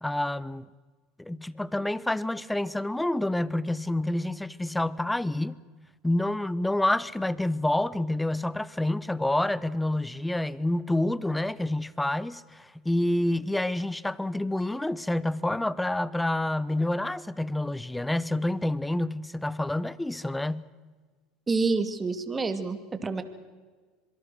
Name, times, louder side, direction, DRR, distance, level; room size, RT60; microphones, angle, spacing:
voice 1, 0.0-0.7 1.2-5.6 6.0-20.7, left 1 dB, 5° left, 0.8 m, -28 dB
voice 2, 21.5-23.2, right 4 dB, 20° right, 2.3 m, -28 dB
26.0 x 23.0 x 6.4 m
supercardioid pair, 110°, 0 cm